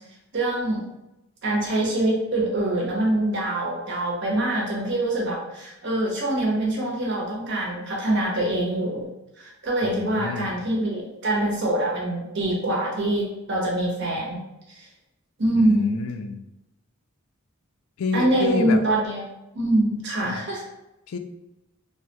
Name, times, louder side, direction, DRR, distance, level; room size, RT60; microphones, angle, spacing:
voice 1, 0.3-0.8 1.4-9.1 9.4-14.4 14.7-14.9 15.4-16.0 18.1-19.2 19.5-20.6, right 1 dB, 60° right, -3 dB, 0.9 m, -24 dB
voice 2, 9.8-10.6 15.5-16.4 18.0-18.8 20.2-20.4 21.1-21.2, left 4 dB, 80° left, 7 dB, 0.3 m, -29 dB
3.3 x 2.2 x 2.8 m, 0.93 s
head